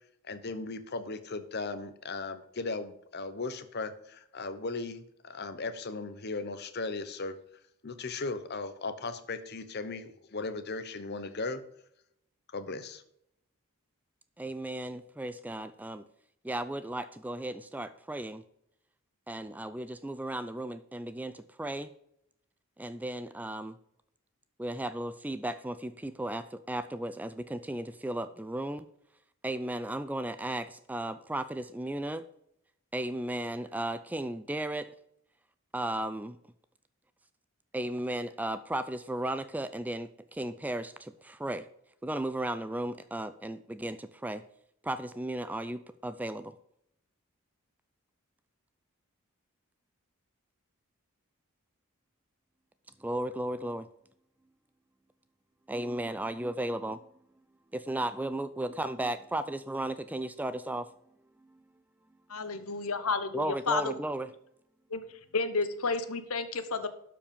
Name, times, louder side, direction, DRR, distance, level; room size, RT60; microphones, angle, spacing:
voice 1, 0.2-7.3 7.8-11.6 12.5-13.0, left 3 dB, 50° left, 0.9 m, -37 dB
voice 2, 14.4-16.0 16.4-18.4 19.3-21.9 22.8-23.8 24.6-28.9 29.4-32.2 32.9-34.9 35.7-36.4 37.7-41.7 42.0-44.4 44.8-46.5 53.0-53.9 55.7-57.0 57.7-60.9 63.3-64.3, right 1 dB, 5° right, 0.3 m, -35 dB
voice 3, 62.3-63.9 64.9-65.0 65.3-66.9, left 4 dB, 75° left, 1.0 m, -31 dB
12.0 x 5.0 x 5.4 m
head